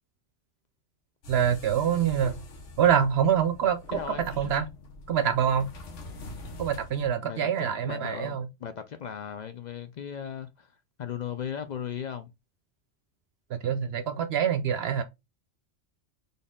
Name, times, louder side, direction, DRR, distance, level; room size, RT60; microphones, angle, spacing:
sound 1, 1.2-7.1, left 2 dB, 85° left, 1.3 m, -44 dB
voice 1, 1.3-2.4 2.8-4.0 4.4-4.7 5.1-5.7 6.6-8.5 13.5-15.0, right 8 dB, 65° right, 0.7 m, -25 dB
voice 2, 3.9-4.2 7.2-10.7 11.0-12.3, left 8 dB, 60° left, 0.4 m, -37 dB
4.2 x 3.4 x 3.6 m
omnidirectional pair, 1.2 m